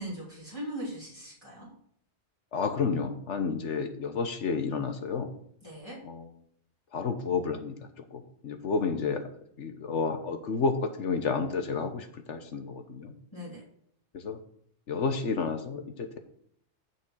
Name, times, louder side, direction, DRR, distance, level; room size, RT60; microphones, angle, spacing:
voice 1, 0.0-1.7 5.6-6.0 13.3-13.6, right 1 dB, 25° left, -7 dB, 3.3 m, -39 dB
voice 2, 2.5-5.3 6.0-6.3 6.9-7.8 8.1-9.2 9.6-13.2 14.1-14.4 14.9-16.2, left 5 dB, 90° left, 7 dB, 1.5 m, -31 dB
7.5 x 6.3 x 6.2 m, 0.67 s
omnidirectional pair, 1.2 m